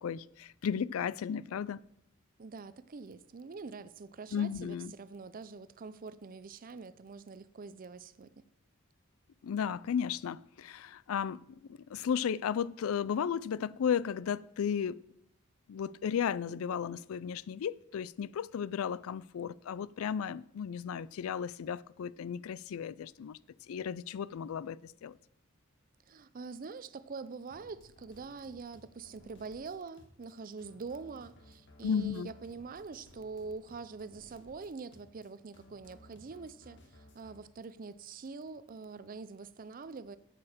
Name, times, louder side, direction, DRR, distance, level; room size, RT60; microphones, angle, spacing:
voice 1, 0.0-1.8 4.3-4.9 9.4-15.0 15.7-23.4 23.7-25.2 31.8-32.3, left 7 dB, 85° left, 0.4 m, -34 dB
voice 2, 2.4-8.3 26.1-40.2, right 4 dB, 40° right, 0.5 m, -45 dB
sound 1, 27.5-37.4, left 1 dB, 60° left, 1.7 m, -59 dB
8.5 x 7.6 x 6.6 m
head